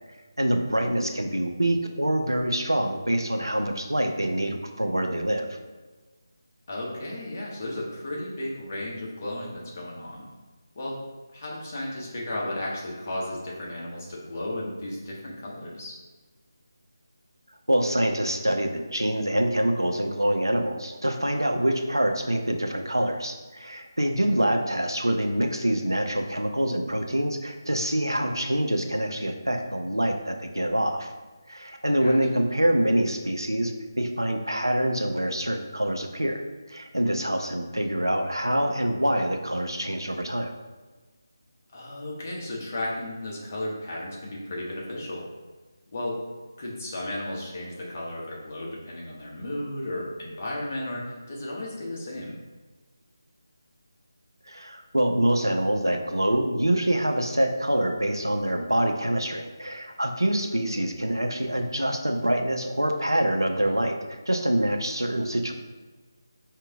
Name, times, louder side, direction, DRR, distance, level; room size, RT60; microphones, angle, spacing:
voice 1, 0.4-5.5 17.7-31.1 31.5-36.4 36.7-40.5 54.5-65.5, right 1 dB, 85° right, 4 dB, 0.7 m, -25 dB
voice 2, 6.7-10.3 10.7-11.0 11.3-15.9 24.3-24.5 32.0-32.2 41.7-45.3 45.9-46.2 46.6-52.4, left 1 dB, 30° left, -4 dB, 1.1 m, -34 dB
5.0 x 2.8 x 3.6 m, 1.3 s
figure-of-eight pair, 160°, 2 cm